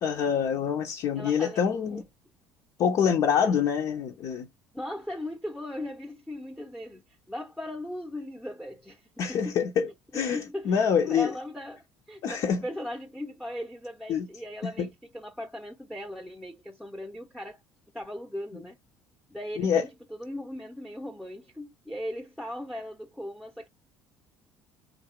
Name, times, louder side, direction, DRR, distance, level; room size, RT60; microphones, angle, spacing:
voice 1, 0.0-2.0 2.8-4.5 9.2-10.4 10.6-11.3 12.2-12.6 14.1-14.3 14.8-14.9 19.6-19.8, left 7 dB, 50° left, 0.9 m, -25 dB
voice 2, 1.2-1.6 1.9-2.0 3.4-3.5 4.7-9.6 10.1-17.6 17.9-18.8 19.3-23.7, left 1 dB, ahead, 0.9 m, -38 dB
3.9 x 2.7 x 4.5 m
figure-of-eight pair, 60°, 8 cm